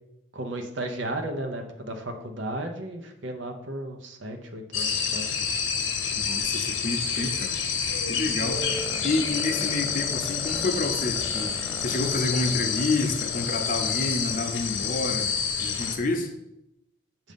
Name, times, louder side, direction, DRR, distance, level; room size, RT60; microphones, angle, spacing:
voice 1, 0.3-5.4, right 1 dB, 65° right, 4 dB, 0.8 m, -34 dB
sound 1, 4.7-16.0, left 6 dB, 75° left, 0.9 m, -28 dB
voice 2, 6.2-7.5 8.1-8.6 9.0-16.3, left 2 dB, 45° left, 5 dB, 0.6 m, -29 dB
sound 2, 8.6-15.0, left 1 dB, ahead, 0.3 m, -41 dB
7.4 x 2.7 x 5.2 m, 0.87 s
head